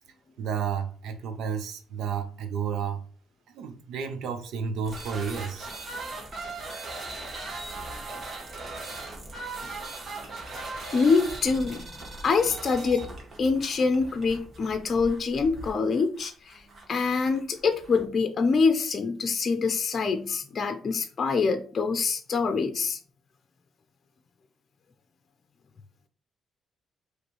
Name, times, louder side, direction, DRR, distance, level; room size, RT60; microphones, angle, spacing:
voice 1, 0.4-3.0 3.5-5.7, right 7 dB, 80° right, 0.7 m, -31 dB
sound 1, 4.8-18.0, right 2 dB, 45° right, 1.6 m, -39 dB
voice 2, 10.9-11.8 12.2-13.1 13.4-16.6 16.9-23.0, left 4 dB, 45° left, 0.6 m, -25 dB
5.1 x 3.2 x 3.1 m
cardioid pair, 90°, 0 cm